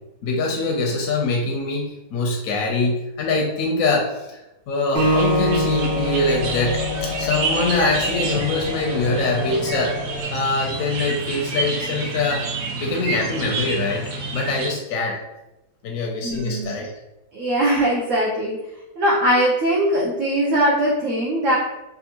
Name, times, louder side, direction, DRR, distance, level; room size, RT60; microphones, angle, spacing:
voice 1, 0.2-4.4 4.7-10.0 10.3-12.5 12.8-15.2 15.8-16.9, left 3 dB, 70° left, 0 dB, 0.9 m, -23 dB
Acoustic guitar, 4.9-8.2, equal, 5° left, 0.7 m, -24 dB
sound 1, 5.0-14.7, right 4 dB, 90° right, 1.2 m, -29 dB
sound 2, 5.2-10.2, left 4 dB, 90° left, 0.4 m, -31 dB
voice 2, 16.2-16.7 17.3-18.6 19.0-21.6, right 1 dB, 65° right, -5 dB, 0.9 m, -20 dB
3.4 x 2.6 x 2.8 m, 0.95 s
omnidirectional pair, 1.6 m